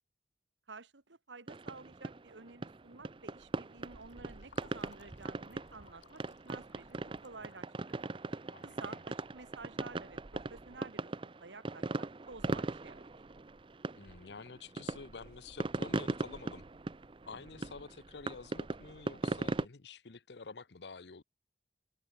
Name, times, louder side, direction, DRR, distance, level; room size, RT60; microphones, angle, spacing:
voice 1, 0.7-8.0 8.6-11.1 11.4-13.1 17.4-17.8, right 3 dB, 90° right, 1.8 m, -52 dB
sound 1, 1.5-19.7, right 2 dB, 30° right, 0.6 m, -39 dB
Fill (with liquid), 3.8-10.2, left 5 dB, 90° left, 2.1 m, -64 dB
voice 2, 8.5-9.0 13.9-16.6 17.3-21.2, left 4 dB, 70° left, 0.8 m, -49 dB
head